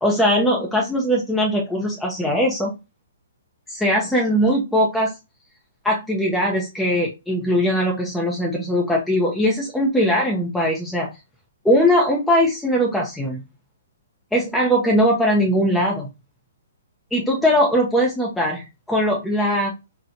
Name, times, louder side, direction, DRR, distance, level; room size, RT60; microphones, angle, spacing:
voice 1, 0.0-2.8 3.7-5.1 5.8-11.1 11.6-13.4 14.3-16.1 17.1-19.7, equal, 5° left, -2 dB, 0.7 m, -20 dB
3.7 x 2.2 x 2.7 m, 0.25 s
hypercardioid pair, 130°, 0 cm